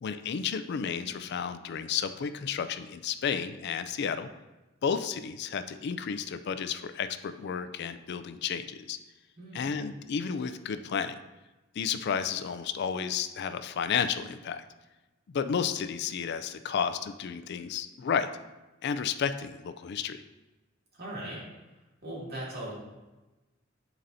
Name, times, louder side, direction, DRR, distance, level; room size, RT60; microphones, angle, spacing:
voice 1, 0.0-4.3 4.8-9.0 9.5-11.2 11.8-14.6 15.3-18.3 18.8-20.2, left 7 dB, 55° left, 10 dB, 0.4 m, -32 dB
voice 2, 9.4-9.7 20.9-21.5 22.0-22.7, right 1 dB, 55° right, -5 dB, 2.3 m, -39 dB
11.0 x 4.1 x 2.7 m, 1.1 s
head